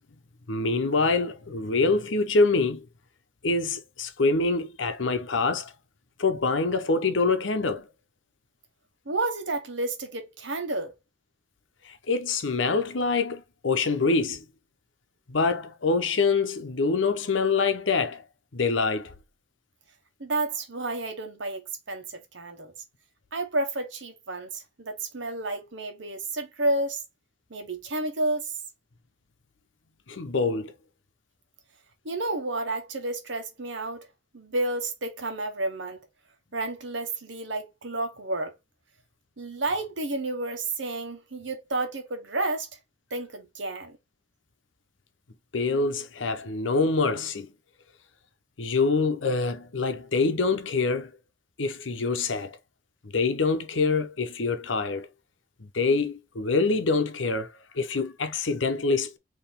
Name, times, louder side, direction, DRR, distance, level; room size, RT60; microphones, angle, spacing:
voice 1, 0.5-2.9 3.4-5.7 6.2-7.9 11.8-14.4 15.3-18.2 18.5-19.1 30.1-30.7 45.5-47.5 48.6-51.1 51.6-52.6 53.0-55.1 55.6-59.2, left 3 dB, 90° left, 0.8 m, -25 dB
voice 2, 9.0-10.9 20.2-22.7 23.3-27.0 27.5-28.6 32.0-34.1 34.3-36.0 36.5-38.6 39.4-42.8 43.1-44.0, right 2 dB, 80° right, 1.2 m, -31 dB
4.5 x 3.0 x 3.6 m
head